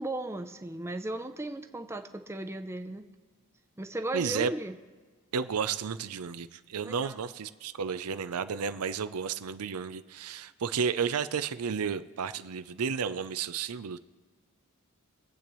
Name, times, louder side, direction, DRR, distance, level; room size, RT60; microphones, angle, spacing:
voice 1, 0.0-3.1 3.8-4.8 6.8-7.2, right 2 dB, 10° right, 7 dB, 0.5 m, -36 dB
voice 2, 4.1-4.5 5.3-14.0, right 6 dB, 90° right, 12 dB, 0.5 m, -32 dB
23.5 x 8.4 x 3.1 m, 1.4 s
head